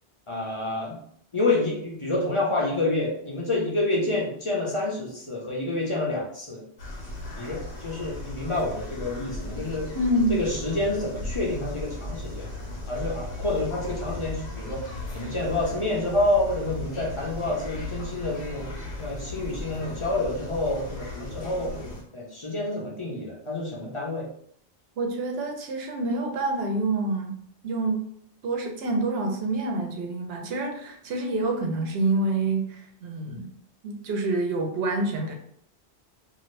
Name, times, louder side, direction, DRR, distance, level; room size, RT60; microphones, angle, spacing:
voice 1, 0.3-1.0 1.3-6.6 7.4-9.9 10.3-12.5 12.9-21.7 22.1-24.3, left 2 dB, 35° left, -3 dB, 0.6 m, -28 dB
sound 1, 6.8-22.0, left 2 dB, 90° left, 1.1 m, -36 dB
voice 2, 9.9-10.4 25.0-27.4 27.6-28.1 28.4-33.5 33.8-35.3, right 2 dB, 70° right, 3 dB, 0.9 m, -27 dB
2.6 x 2.5 x 3.1 m, 0.66 s
omnidirectional pair, 1.1 m